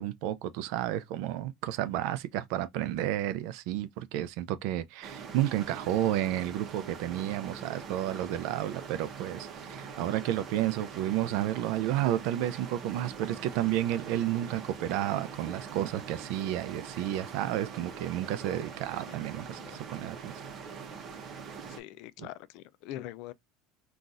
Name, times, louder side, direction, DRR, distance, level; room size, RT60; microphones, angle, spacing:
voice 1, 0.0-20.4 22.2-22.3, right 13 dB, 65° right, 0.4 m, -31 dB
sound 1, 5.0-21.8, right 6 dB, 35° right, 0.8 m, -43 dB
voice 2, 19.5-19.8 21.7-23.3, left 14 dB, 60° left, 0.3 m, -43 dB
3.9 x 2.4 x 2.4 m
cardioid pair, 145°, 0 cm